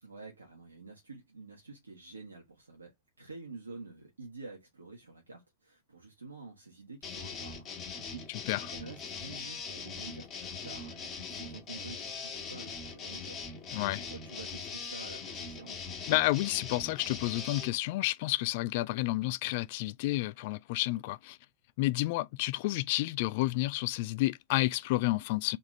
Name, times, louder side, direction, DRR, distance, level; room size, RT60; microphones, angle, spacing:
voice 1, 0.0-8.3 8.7-15.9, right 3 dB, 75° right, 1.4 m, -49 dB
sound 1, 7.0-17.7, left 5 dB, 30° left, 1.6 m, -41 dB
voice 2, 8.3-8.6 13.7-14.1 16.1-21.4 21.8-25.6, left 19 dB, 50° left, 0.3 m, -30 dB
4.1 x 3.6 x 3.0 m
figure-of-eight pair, 90°, 0 cm